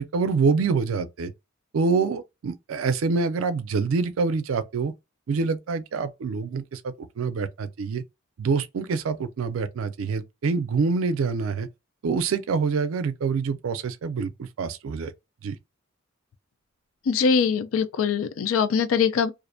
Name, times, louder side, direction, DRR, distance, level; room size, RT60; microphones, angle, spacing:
voice 1, 0.0-1.3 1.7-4.9 5.3-8.0 8.4-11.7 12.0-15.1 15.4-15.6, right 4 dB, 80° right, 0.4 m, -26 dB
voice 2, 17.1-19.3, left 6 dB, 80° left, 0.4 m, -22 dB
2.5 x 2.1 x 2.6 m
head